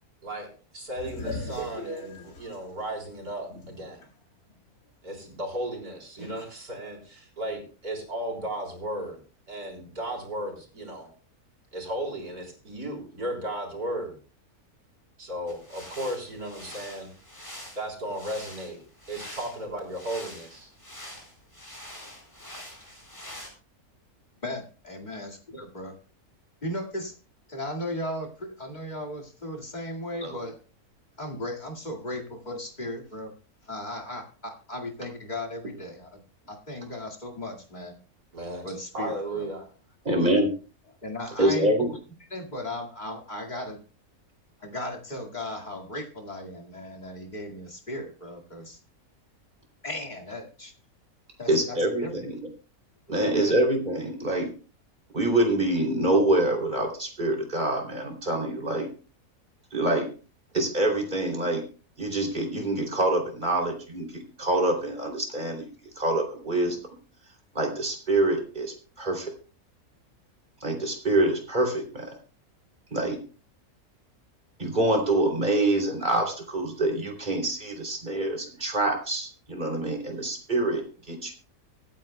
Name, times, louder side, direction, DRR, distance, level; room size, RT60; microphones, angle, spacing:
voice 1, 0.7-4.0 5.0-9.2 9.5-11.1 11.7-14.1 15.2-17.1 17.7-18.8 19.1-20.7 38.3-38.7 38.9-39.6, right 1 dB, 75° right, 0 dB, 4.3 m, -35 dB
sound 1, 0.9-4.1 4.5-4.6 6.2-6.5, left 1 dB, 75° left, 2.4 m, -38 dB
sound 2, 15.5-23.5, equal, 15° left, 4.1 m, -45 dB
voice 2, 24.4-26.0 26.6-27.1 27.5-30.5 31.2-33.3 33.6-36.2 36.5-38.0 38.6-39.5 41.0-42.0 42.3-43.8 44.6-48.8 49.8-50.7 51.4-52.1 53.1-53.5, left 1 dB, 30° left, 3 dB, 2.2 m, -36 dB
voice 3, 40.0-40.5 41.4-41.9 51.5-52.3 53.1-54.5 55.1-58.9 59.7-60.1 60.5-61.6 62.0-65.7 66.0-66.8 67.5-69.3 70.6-72.1 72.9-73.2 74.6-80.8 81.1-81.3, right 1 dB, 30° right, 1 dB, 3.1 m, -25 dB
24.5 x 9.1 x 2.2 m, 0.37 s
omnidirectional pair, 1.6 m